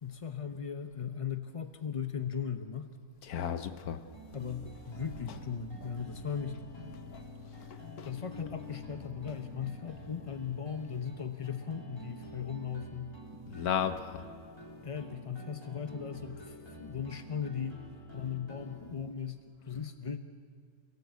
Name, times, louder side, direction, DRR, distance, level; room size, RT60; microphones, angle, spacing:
voice 1, 0.0-2.9 4.3-6.6 7.9-13.2 14.8-17.9 18.1-20.2, left 7 dB, 35° left, 0.6 m, -38 dB
voice 2, 3.2-4.0 5.3-5.4 5.8-5.9 7.1-7.2 8.0-8.1 13.5-14.2, left 8 dB, 85° left, 1.4 m, -34 dB
sound 1, 4.0-18.8, left 1 dB, 15° left, 3.8 m, -49 dB
29.0 x 17.5 x 8.3 m
omnidirectional pair, 1.6 m